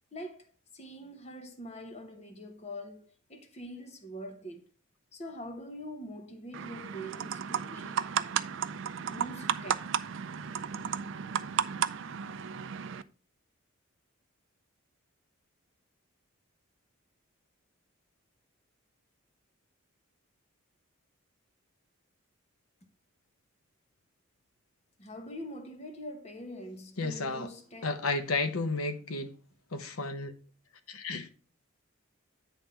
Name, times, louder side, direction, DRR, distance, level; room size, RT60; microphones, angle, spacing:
voice 1, 0.1-4.7 5.1-8.0 9.0-9.9 25.0-27.9, equal, 30° left, 1.0 m, -44 dB
sound 1, 6.5-13.0, right 7 dB, 60° right, 0.4 m, -34 dB
voice 2, 27.0-27.5 27.8-29.4 29.7-30.3 30.9-31.3, left 3 dB, 85° left, 0.9 m, -32 dB
9.2 x 3.5 x 5.6 m
head